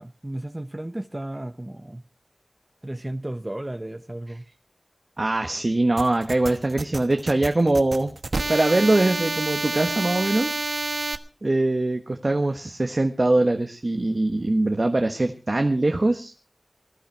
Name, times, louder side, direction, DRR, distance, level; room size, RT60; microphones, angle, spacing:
voice 1, 0.0-2.0 2.8-4.4, right 1 dB, 25° right, 0.7 m, -34 dB
voice 2, 5.2-8.1 8.4-10.5 11.4-16.3, right 2 dB, 50° right, 1.4 m, -22 dB
sound 1, 6.0-11.2, right 3 dB, 80° right, 1.2 m, -29 dB
20.0 x 12.0 x 4.6 m
wide cardioid pair, 60°, 0 cm